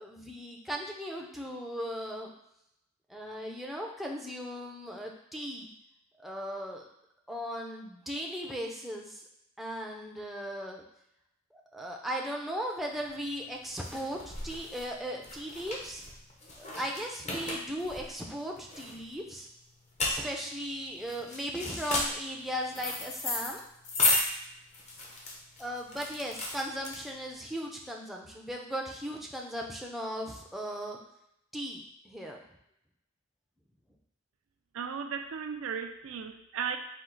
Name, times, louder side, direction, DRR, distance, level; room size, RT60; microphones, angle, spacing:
voice 1, 0.0-2.3 3.1-5.7 6.2-6.9 7.3-9.2 9.6-10.8 11.5-16.1 16.6-19.5 20.0-23.6 25.6-31.0 31.5-32.4, equal, ahead, -1 dB, 0.5 m, -37 dB
sound 1, 13.0-27.4, left 2 dB, 35° left, 0.7 m, -34 dB
voice 2, 34.7-36.8, right 6 dB, 70° right, 6 dB, 0.4 m, -35 dB
4.4 x 2.4 x 3.8 m, 0.80 s
head